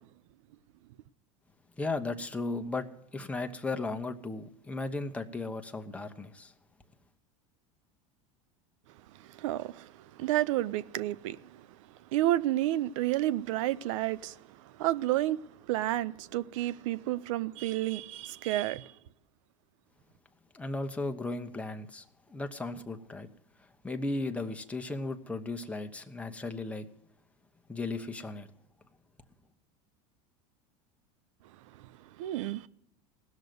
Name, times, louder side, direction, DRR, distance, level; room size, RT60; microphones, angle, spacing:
voice 1, 1.8-6.5 20.5-23.3 23.6-26.9 27.7-28.5, left 3 dB, 10° left, 1.0 m, -36 dB
voice 2, 9.3-9.9 10.2-11.7 12.1-14.4 14.8-18.9 32.2-32.7, right 15 dB, 75° right, 0.6 m, -30 dB
16.5 x 6.6 x 9.2 m
supercardioid pair, 105°, 16 cm